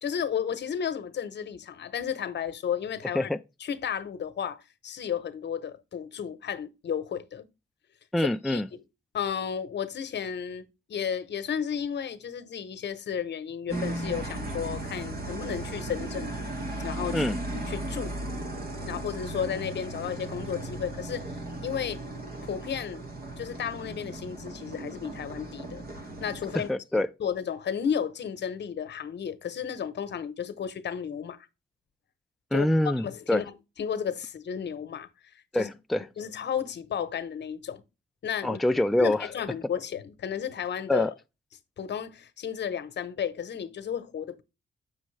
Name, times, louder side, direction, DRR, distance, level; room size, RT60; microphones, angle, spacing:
voice 1, 0.0-3.3 3.6-7.5 8.4-8.8 9.1-16.3 16.8-17.3 17.5-18.1 18.9-22.0 22.4-23.0 23.4-25.8 26.2-26.7 26.9-31.4 32.5-32.7 33.0-33.5 33.8-35.1 35.6-35.7 36.2-37.8 38.2-38.6 39.0-41.1 41.8-44.4, left 8 dB, 70° left, 1.0 m, -33 dB
voice 2, 8.1-8.7 17.1-17.4 26.5-27.1 32.5-33.4 35.5-36.1 38.4-39.3 40.9-41.1, left 1 dB, ahead, 0.4 m, -25 dB
sound 1, 13.7-26.7, right 2 dB, 55° right, 1.8 m, -36 dB
7.3 x 6.4 x 3.2 m
cardioid pair, 105°, 19 cm